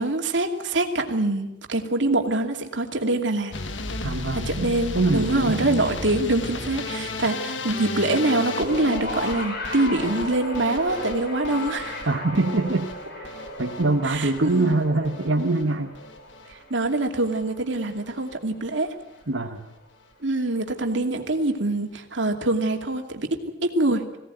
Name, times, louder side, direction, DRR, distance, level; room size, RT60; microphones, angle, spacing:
voice 1, 0.0-3.5 4.3-12.0 14.0-14.7 16.5-18.9 20.2-24.0, right 2 dB, 70° right, 4 dB, 2.6 m, -24 dB
sound 1, 3.5-15.6 15.9-16.5 16.8-17.4 17.8-18.0 18.3-18.4 18.7-18.8, left 2 dB, 75° left, 1.7 m, -34 dB
voice 2, 4.0-5.8 12.1-13.3 13.6-16.0 19.3-19.6, right 2 dB, 90° right, 1 dB, 1.5 m, -24 dB
sound 2, 8.2-18.6 19.6-19.7, left 1 dB, 55° left, 5.7 m, -36 dB
21.5 x 17.5 x 9.2 m, 0.96 s
head